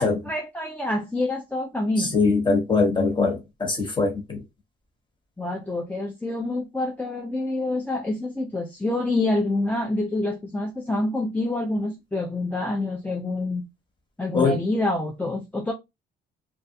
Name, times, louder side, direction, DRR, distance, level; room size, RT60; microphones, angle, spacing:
voice 1, 0.0-2.2 5.4-13.6 14.2-15.7, left 2 dB, 10° left, 0.4 m, -27 dB
voice 2, 2.0-4.4 14.3-14.6, left 4 dB, 25° left, 1.2 m, -22 dB
2.4 x 2.1 x 2.7 m
cardioid pair, 90°, 20 cm